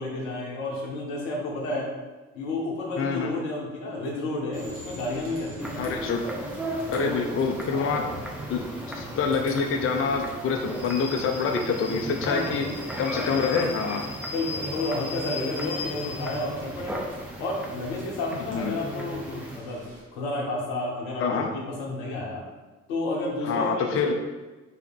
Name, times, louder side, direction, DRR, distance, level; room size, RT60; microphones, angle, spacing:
voice 1, 0.0-1.9 2.3-5.8 6.9-7.3 7.7-8.1 12.1-13.3 14.3-17.0 17.4-19.8 20.1-22.4 22.9-24.1, left 2 dB, 75° left, -3 dB, 1.0 m, -31 dB
voice 2, 3.0-3.3 5.8-6.2 6.9-8.0 8.5-8.6 8.9-12.6 13.0-14.0 18.5-18.8 21.2-21.5 23.5-24.1, left 5 dB, 35° left, 2 dB, 0.6 m, -26 dB
Rain / Train, 4.5-20.0, left 2 dB, 60° right, 1.5 m, -41 dB
sound 1, 5.6-19.6, right 1 dB, 5° right, 0.7 m, -36 dB
5.6 x 2.1 x 4.5 m, 1.2 s
figure-of-eight pair, 40°, 37 cm